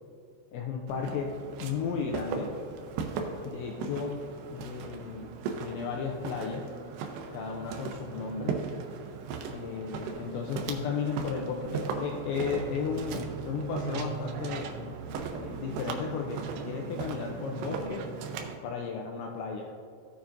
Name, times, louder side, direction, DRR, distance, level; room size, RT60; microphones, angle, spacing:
voice 1, 0.5-2.5 3.4-4.2 4.5-5.3 5.6-6.7 7.3-8.6 9.5-14.7 15.4-18.1 18.6-19.7, left 6 dB, 90° left, 1 dB, 2.5 m, -34 dB
Walk footsteps, 0.9-18.6, right 5 dB, 85° right, 2.6 m, -37 dB
16.5 x 7.1 x 2.6 m, 2.3 s
omnidirectional pair, 5.9 m